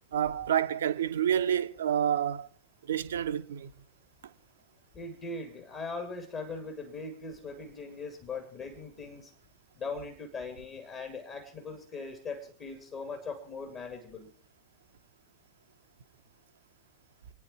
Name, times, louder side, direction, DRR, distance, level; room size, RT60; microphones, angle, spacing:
voice 1, 0.1-2.5 2.8-3.7, right 9 dB, 65° right, 0.9 m, -28 dB
voice 2, 4.9-9.3 9.8-14.3, left 3 dB, 30° left, 2.7 m, -40 dB
27.0 x 9.8 x 4.4 m
figure-of-eight pair, 90°, 0 cm